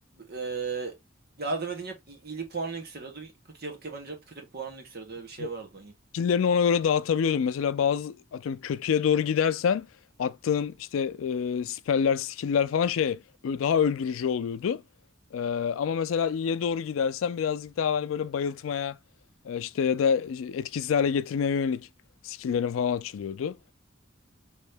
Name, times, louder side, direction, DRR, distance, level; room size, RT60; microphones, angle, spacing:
voice 1, 0.2-1.0 1.4-3.3 3.6-5.9, right 4 dB, 55° right, 1.2 m, -36 dB
voice 2, 6.1-9.9 10.2-14.8 15.3-19.0 19.4-21.9 22.2-23.6, left 7 dB, 90° left, 0.3 m, -27 dB
3.1 x 2.7 x 3.3 m
head